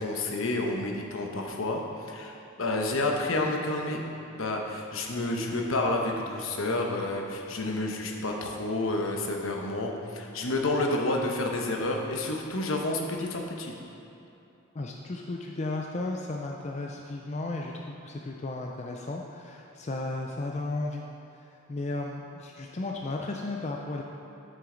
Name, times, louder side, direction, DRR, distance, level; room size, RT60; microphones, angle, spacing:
voice 1, 0.0-4.0 4.3-13.7, left 2 dB, 70° left, 1 dB, 1.0 m, -30 dB
voice 2, 14.7-21.0 21.4-24.0, left 2 dB, 30° left, 0 dB, 0.4 m, -34 dB
8.2 x 7.7 x 3.9 m, 2.8 s
head